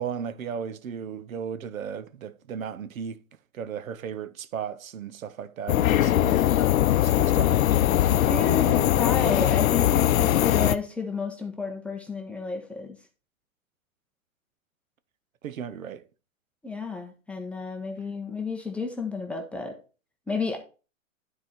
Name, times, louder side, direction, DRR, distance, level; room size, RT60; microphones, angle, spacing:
voice 1, 0.0-3.2 3.5-6.5 6.9-7.6 15.4-16.0, right 7 dB, 90° right, 0.8 m, -35 dB
sound 1, 5.7-10.8, left 12 dB, 85° left, 0.6 m, -21 dB
voice 2, 8.3-13.0 16.6-19.8 20.3-20.6, left 4 dB, 5° left, 0.6 m, -32 dB
9.5 x 4.2 x 4.4 m
hypercardioid pair, 140°, 40 cm